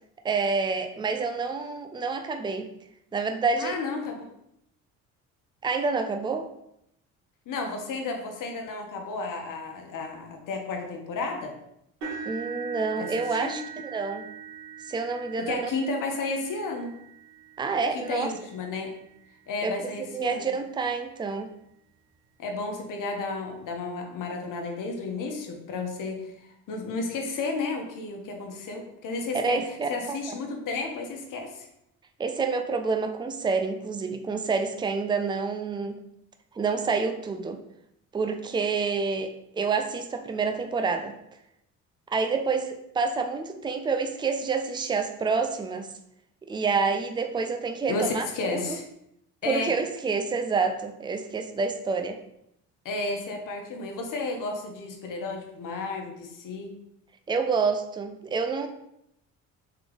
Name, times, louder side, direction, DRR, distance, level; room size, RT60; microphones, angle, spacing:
voice 1, 0.2-2.7 3.1-3.8 5.6-6.5 12.3-14.3 14.9-15.6 17.6-18.3 19.6-19.7 20.1-21.5 29.3-29.9 30.3-30.4 32.2-35.9 36.5-37.6 38.1-41.1 42.1-45.9 46.5-48.8 49.5-52.2 57.3-58.7, right 4 dB, 15° right, 6 dB, 0.5 m, -28 dB
voice 2, 3.6-4.2 7.5-11.5 13.0-13.6 15.4-16.9 17.9-18.9 19.5-20.5 22.4-31.7 47.9-48.9 49.4-49.7 52.8-56.7, left 3 dB, 60° left, 3 dB, 1.0 m, -32 dB
sound 1, 12.0-20.0 20.7-20.9 21.3-21.4 22.8-22.9, right 6 dB, 80° right, 1.6 m, -42 dB
3.8 x 3.3 x 3.5 m, 0.78 s
supercardioid pair, 65°, 36 cm